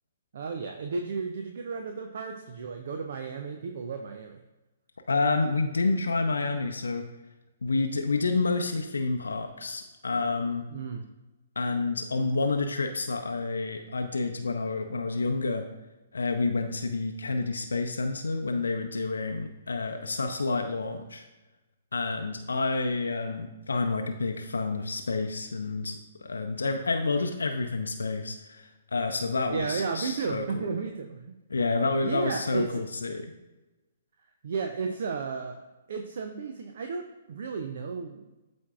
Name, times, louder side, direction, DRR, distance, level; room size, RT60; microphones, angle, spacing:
voice 1, 0.3-4.4 10.7-11.0 29.5-31.3 32.0-32.8 34.4-35.6 35.9-38.3, right 5 dB, 50° right, 5 dB, 0.5 m, -33 dB
voice 2, 5.1-7.1 7.6-10.7 11.6-15.6 16.1-21.2 21.9-30.7 31.5-33.3, left 3 dB, 70° left, 5 dB, 0.6 m, -29 dB
12.5 x 4.4 x 2.4 m, 1.1 s
figure-of-eight pair, 120°, 0 cm